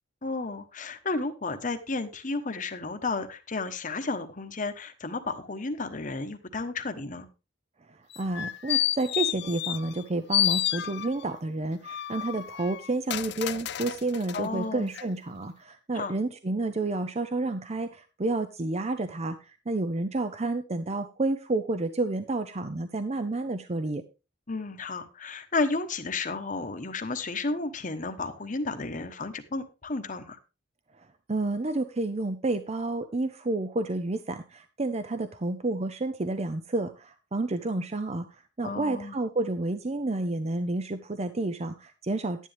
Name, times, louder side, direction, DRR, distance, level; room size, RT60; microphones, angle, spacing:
voice 1, 0.2-7.3 14.3-14.9 15.9-16.1 24.5-30.4 38.6-39.2, left 3 dB, 45° left, 9 dB, 1.1 m, -32 dB
voice 2, 7.9-24.0 31.0-42.5, right 2 dB, 35° right, 10 dB, 0.6 m, -30 dB
sound 1, 8.1-10.0 10.3-11.3 11.8-14.5 14.9-15.0, left 12 dB, 60° left, 0.5 m, -30 dB
11.0 x 10.0 x 3.4 m, 0.30 s
head